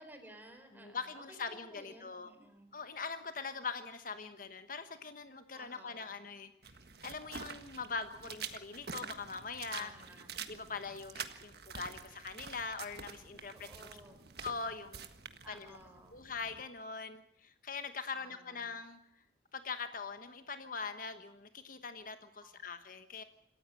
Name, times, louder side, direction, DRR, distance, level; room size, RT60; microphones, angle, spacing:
voice 1, 0.0-2.7 5.5-6.2 9.7-10.3 13.5-14.2 15.4-16.2 18.1-18.7 22.4-22.7, right 1 dB, 10° right, 6 dB, 4.3 m, -55 dB
voice 2, 0.7-2.3 2.7-6.5 7.0-9.9 10.5-13.9 14.4-15.1 15.5-15.8 16.1-19.0 19.5-23.2, left 5 dB, 50° left, 9 dB, 1.2 m, -42 dB
sound 1, 6.6-16.6, right 6 dB, 60° right, 1.6 m, -47 dB
27.5 x 14.5 x 7.8 m, 0.81 s
head